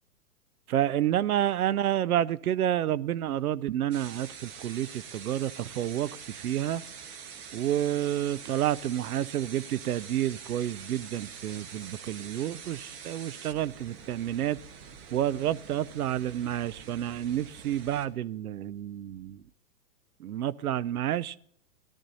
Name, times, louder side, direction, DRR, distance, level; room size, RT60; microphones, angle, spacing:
voice 1, 0.7-6.8 7.5-14.6 15.1-19.4 20.2-21.4, right 11 dB, 65° right, 0.6 m, -29 dB
sound 1, 3.9-18.1, right 7 dB, 25° right, 1.2 m, -45 dB
18.0 x 12.5 x 2.7 m
hypercardioid pair, 120°, 48 cm